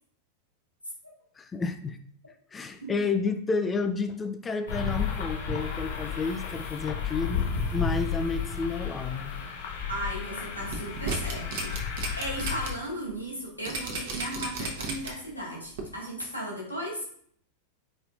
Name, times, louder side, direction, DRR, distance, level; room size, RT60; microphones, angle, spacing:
voice 1, 1.4-2.0 2.5-7.5 7.7-9.3, left 4 dB, 15° left, 7 dB, 0.3 m, -30 dB
sound 1, 4.7-12.7, left 6 dB, 60° left, 1.2 m, -32 dB
voice 2, 9.9-17.1, equal, 90° left, -3 dB, 1.8 m, -36 dB
sound 2, 10.6-12.7 13.1-13.2 13.7-15.3 15.8-15.9, right 3 dB, 55° right, 1.0 m, -34 dB
4.3 x 4.1 x 2.6 m, 0.62 s
figure-of-eight pair, 90°, 0 cm